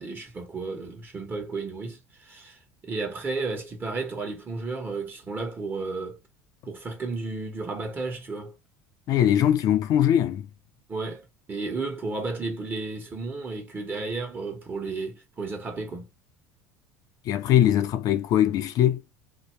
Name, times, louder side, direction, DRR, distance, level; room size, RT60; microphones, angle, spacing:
voice 1, 0.0-6.2 6.6-8.5 10.9-16.1, right 3 dB, 25° right, 1.3 m, -33 dB
voice 2, 9.1-10.5 17.3-19.0, left 11 dB, 55° left, 0.5 m, -21 dB
2.8 x 2.1 x 3.1 m
supercardioid pair, 95°, 7 cm